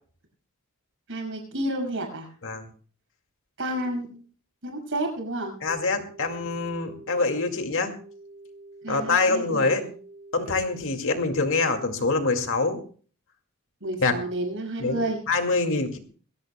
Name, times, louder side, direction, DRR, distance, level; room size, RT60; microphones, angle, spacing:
voice 1, 1.1-2.3 3.6-4.1 4.6-5.5 8.8-9.9 13.8-15.2, right 1 dB, 60° right, 2 dB, 6.2 m, -30 dB
voice 2, 5.6-7.9 8.9-9.8 10.3-12.8 14.0-14.1 14.8-15.0 15.3-16.0, left 3 dB, 60° left, 5 dB, 2.2 m, -25 dB
sound 1, 5.7-11.8, right 2 dB, 10° left, 6.6 m, -47 dB
22.0 x 16.5 x 2.2 m, 0.42 s
head